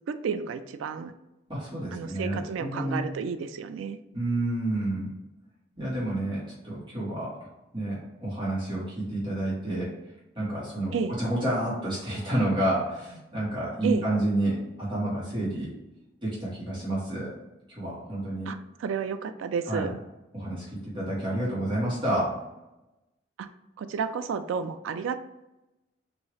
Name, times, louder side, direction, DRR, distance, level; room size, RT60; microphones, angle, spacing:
voice 1, 0.1-1.1 1.9-4.0 10.9-11.2 13.8-14.1 18.5-19.9 23.4-23.5 23.8-25.2, right 6 dB, 90° right, 10 dB, 0.3 m, -31 dB
voice 2, 1.5-3.0 4.1-5.1 5.8-7.4 7.7-9.9 10.3-15.7 16.2-17.3 17.7-18.5 19.7-19.9 20.3-22.3, right 1 dB, 25° right, -8 dB, 1.4 m, -29 dB
3.0 x 2.7 x 3.0 m, 0.96 s
head